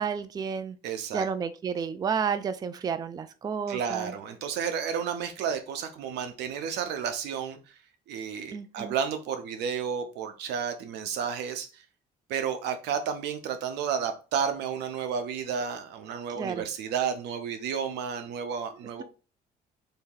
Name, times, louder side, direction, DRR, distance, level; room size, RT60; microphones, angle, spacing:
voice 1, 0.0-0.8 1.1-4.1 8.5-8.9 16.4-16.7, right 6 dB, 25° right, 11 dB, 0.3 m, -31 dB
voice 2, 0.8-1.3 3.7-7.6 8.1-11.8 12.3-19.0, right 7 dB, 85° right, 8 dB, 0.8 m, -32 dB
4.0 x 2.8 x 3.8 m, 0.34 s
cardioid pair, 110°, 17 cm